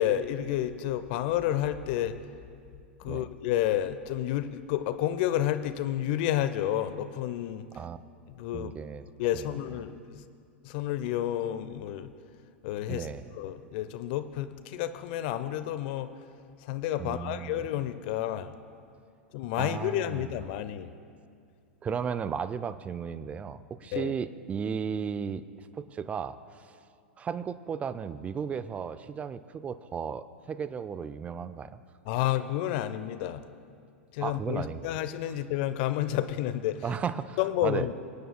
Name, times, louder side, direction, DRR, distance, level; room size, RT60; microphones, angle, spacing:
voice 1, 0.0-2.2 3.0-7.7 8.3-8.7 9.2-10.2 10.6-12.1 12.6-13.1 13.3-16.1 16.6-18.5 19.3-20.9 23.9-24.1 32.1-33.4 34.1-36.8 37.4-37.9, left 12 dB, 50° left, 12 dB, 0.6 m, -30 dB
voice 2, 8.5-9.0 9.3-9.4 12.9-13.3 17.0-17.6 19.6-20.3 21.8-26.4 27.2-31.8 34.2-35.0 36.8-37.9, right 7 dB, 20° right, 13 dB, 0.4 m, -35 dB
24.0 x 9.2 x 2.2 m, 2.3 s
hypercardioid pair, 105°, 7 cm